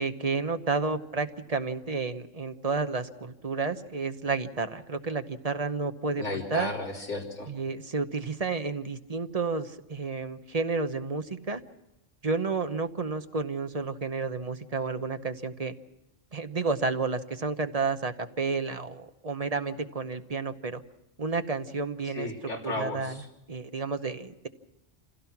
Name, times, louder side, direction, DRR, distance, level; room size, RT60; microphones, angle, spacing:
voice 1, 0.0-6.7 7.5-11.6 12.2-15.7 16.3-20.8 21.2-22.3 22.6-23.2 23.5-24.5, right 4 dB, 35° right, 8 dB, 0.9 m, -31 dB
voice 2, 6.2-7.5 22.1-23.2, left 2 dB, 70° left, -2 dB, 3.7 m, -34 dB
26.5 x 16.5 x 5.9 m, 0.93 s
omnidirectional pair, 1.3 m